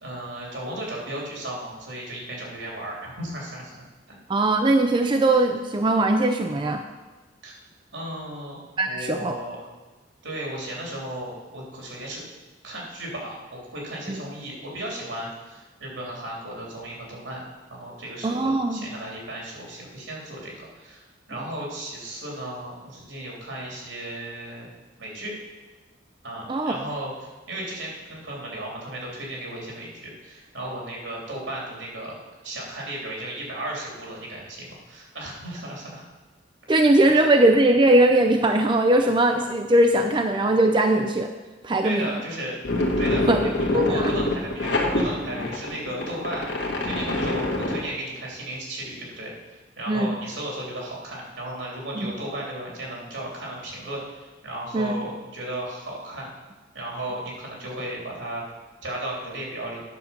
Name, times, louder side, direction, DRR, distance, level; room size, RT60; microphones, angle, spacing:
voice 1, 0.0-4.2 7.4-7.5 7.9-9.6 10.2-12.2 12.6-17.4 17.7-24.7 25.0-25.3 26.2-32.1 32.4-36.0 36.8-37.3 41.8-42.6 43.0-56.3 56.7-58.4 58.8-59.8, right 1 dB, 75° right, -3 dB, 3.4 m, -35 dB
voice 2, 4.3-6.8 8.8-9.3 14.1-14.2 18.2-18.9 26.5-26.7 36.7-41.3 41.6-42.1 43.3-43.4 43.7-44.1 49.9-50.2 52.0-52.1 54.7-54.9, right 1 dB, 25° right, 5 dB, 0.4 m, -20 dB
sound 1, 42.6-47.9, left 2 dB, 65° left, 1.6 m, -25 dB
9.6 x 6.7 x 5.9 m, 1.2 s
head